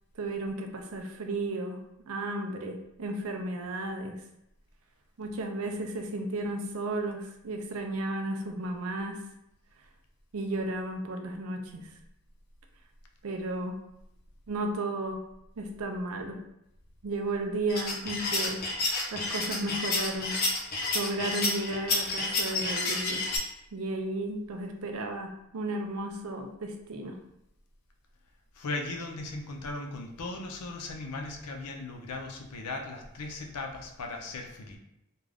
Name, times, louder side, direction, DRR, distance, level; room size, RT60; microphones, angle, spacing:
voice 1, 0.2-1.8 2.1-4.1 5.2-9.2 10.3-11.9 13.2-13.8 14.5-15.2 15.6-16.4 17.0-18.6 19.1-20.4 20.9-23.2 23.7-27.2, right 2 dB, 70° right, 4 dB, 0.4 m, -33 dB
sound 1, 17.7-23.4, left 2 dB, 40° left, 0.6 m, -30 dB
voice 2, 28.5-34.8, left 2 dB, 90° left, 3 dB, 0.5 m, -37 dB
2.4 x 2.3 x 3.2 m, 0.83 s
head